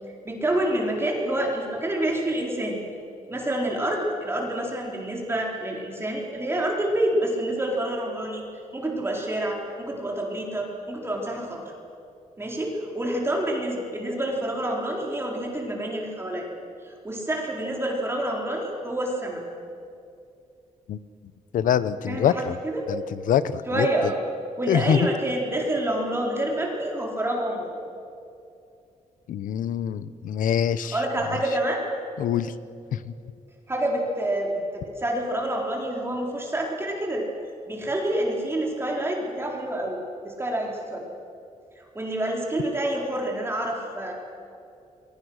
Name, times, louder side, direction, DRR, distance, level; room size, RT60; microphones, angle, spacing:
voice 1, 0.2-2.8 3.3-8.4 8.7-11.6 12.4-16.5 16.8-19.4 22.1-22.9 23.7-24.2 24.6-27.7 30.9-31.8 33.7-37.2 37.7-41.1 41.8-44.1, right 1 dB, 20° right, -1 dB, 4.2 m, -28 dB
voice 2, 21.5-22.6 22.9-24.1 24.7-25.1 29.3-31.0 32.2-32.5 32.9-33.1, left 9 dB, 85° left, 15 dB, 0.9 m, -24 dB
29.5 x 23.0 x 6.5 m, 2.6 s
cardioid pair, 125°, 13 cm